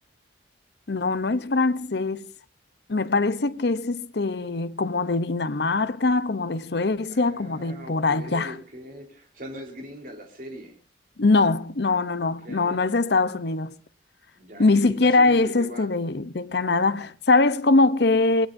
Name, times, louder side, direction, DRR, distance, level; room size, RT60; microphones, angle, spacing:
voice 1, 0.9-2.3 2.9-8.5 11.2-13.7 14.6-18.5, left 3 dB, 65° left, 0.8 m, -22 dB
voice 2, 7.1-10.8 12.2-12.8 14.3-15.9, equal, 45° right, 3.9 m, -41 dB
24.5 x 19.0 x 2.7 m
head